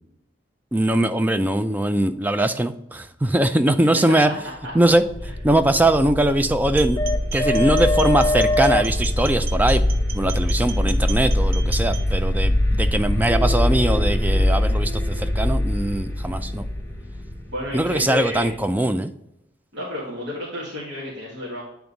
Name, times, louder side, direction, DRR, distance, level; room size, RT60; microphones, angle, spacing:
voice 1, 0.7-4.3 4.7-5.0 5.4-7.0 7.3-9.8 10.1-16.7 17.7-19.1, right 1 dB, 10° right, 10 dB, 0.3 m, -21 dB
sound 1, 4.9-18.6, left 1 dB, 15° left, 1.1 m, -22 dB
sound 2, 6.8-12.0, right 8 dB, 50° right, 0.6 m, -37 dB
voice 2, 17.5-18.5 19.7-21.6, left 1 dB, 70° right, -5 dB, 1.7 m, -31 dB
8.7 x 3.5 x 3.9 m, 0.84 s
head